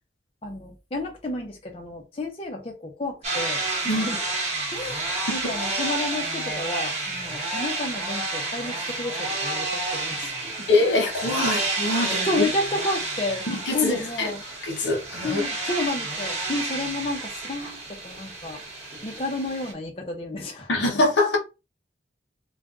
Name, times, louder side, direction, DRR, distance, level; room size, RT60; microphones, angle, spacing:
voice 1, 0.4-4.2 4.7-10.7 12.1-13.5 13.7-14.4 15.2-18.6 19.0-21.0, left 2 dB, 30° left, 0.6 m, -31 dB
sound 1, 3.2-19.7, right 2 dB, 35° right, 1.0 m, -30 dB
voice 2, 10.7-12.3 13.5-14.3 14.6-15.4 20.7-21.4, left 2 dB, 85° left, 0.9 m, -23 dB
2.5 x 2.2 x 3.6 m
head